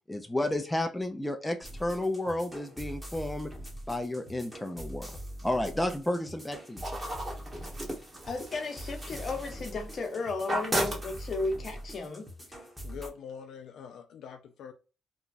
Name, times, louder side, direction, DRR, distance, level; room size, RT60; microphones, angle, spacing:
voice 1, 0.1-3.5 3.9-6.8, left 1 dB, 10° left, 0.4 m, -32 dB
sound 1, 1.6-13.1, equal, 10° right, 1.1 m, -43 dB
sound 2, 6.8-10.1 10.4-11.6, right 1 dB, 25° right, 1.3 m, -35 dB
voice 2, 8.2-12.3, left 3 dB, 45° left, 0.9 m, -34 dB
voice 3, 12.5-14.7, left 7 dB, 75° left, 0.4 m, -45 dB
3.0 x 2.2 x 2.5 m
cardioid pair, 90°, 0 cm